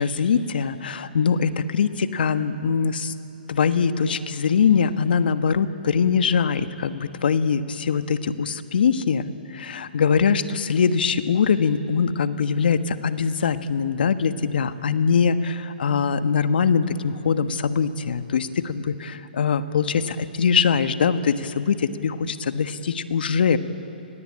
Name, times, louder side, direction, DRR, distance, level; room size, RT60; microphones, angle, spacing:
voice 1, 0.0-3.1 3.5-23.6, left 6 dB, 65° left, 10 dB, 1.4 m, -22 dB
30.0 x 21.0 x 8.7 m, 2.8 s
hypercardioid pair, 130°, 6 cm